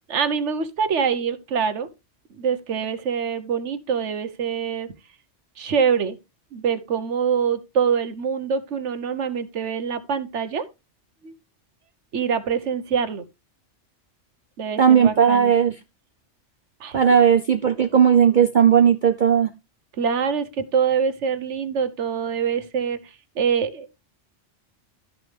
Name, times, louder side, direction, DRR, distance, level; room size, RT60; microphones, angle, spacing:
voice 1, 0.1-1.9 2.4-4.9 5.6-6.2 6.5-10.7 11.2-11.3 12.1-13.2 14.6-15.5 16.8-17.0 20.0-23.0 23.3-23.9, right 6 dB, 75° right, 1.4 m, -24 dB
voice 2, 14.8-15.8 16.9-19.5, right 8 dB, 50° right, 0.7 m, -16 dB
13.0 x 6.3 x 3.4 m
omnidirectional pair, 1.2 m